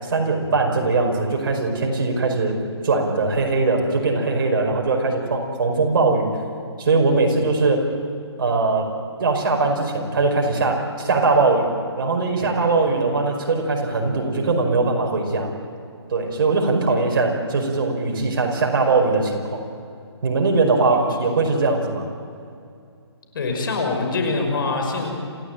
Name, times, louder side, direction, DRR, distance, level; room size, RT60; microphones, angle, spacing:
voice 1, 0.0-2.6 2.8-6.3 6.8-7.8 8.4-8.9 9.2-11.7 12.0-15.5 16.1-19.6 20.2-22.1, right 3 dB, 50° right, 2 dB, 5.1 m, -21 dB
voice 2, 23.3-25.1, left 3 dB, 50° left, 3 dB, 5.6 m, -24 dB
27.5 x 16.0 x 9.2 m, 2.4 s
hypercardioid pair, 160°, 14 cm